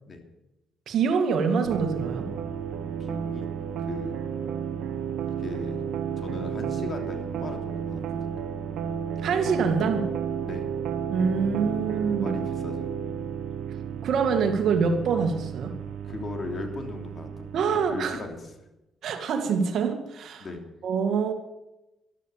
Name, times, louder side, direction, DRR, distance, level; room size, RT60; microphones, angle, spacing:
voice 1, 0.9-2.3 9.2-10.1 11.1-12.3 14.0-15.7 17.5-18.2 19.0-20.5 20.8-21.3, right 5 dB, 70° right, 6 dB, 2.1 m, -25 dB
sound 1, 1.6-18.4, right 8 dB, 85° right, 1.2 m, -32 dB
voice 2, 3.0-3.5 3.8-4.2 5.4-5.8 6.2-8.5 10.5-10.6 12.2-12.9 16.0-18.4 20.4-20.6, left 3 dB, 40° left, 4 dB, 3.1 m, -38 dB
12.5 x 12.0 x 7.4 m, 0.95 s
cardioid pair, 90°, 0 cm